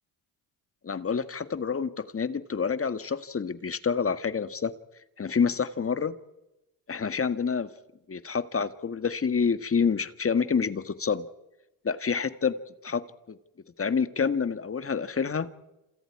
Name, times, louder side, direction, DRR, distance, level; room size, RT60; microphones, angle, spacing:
voice 1, 0.8-4.7 5.2-6.2 6.9-7.7 8.1-11.2 11.8-12.6 12.8-13.0 13.3-13.4 13.8-15.5, left 6 dB, 30° left, 12 dB, 1.7 m, -27 dB
28.0 x 27.0 x 4.8 m, 0.94 s
supercardioid pair, 65°, 42 cm